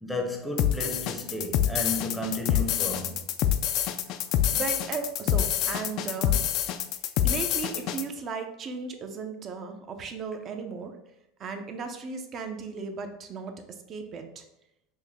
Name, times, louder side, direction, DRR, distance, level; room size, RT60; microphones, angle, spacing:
voice 1, 0.0-3.2, left 1 dB, ahead, 0.7 m, -33 dB
sound 1, 0.6-8.0, left 10 dB, 50° left, 0.3 m, -26 dB
voice 2, 4.5-6.4 7.2-10.9 11.4-13.6 13.9-14.4, right 5 dB, 35° right, 0.6 m, -36 dB
5.3 x 2.2 x 3.5 m
supercardioid pair, 125°, 0 cm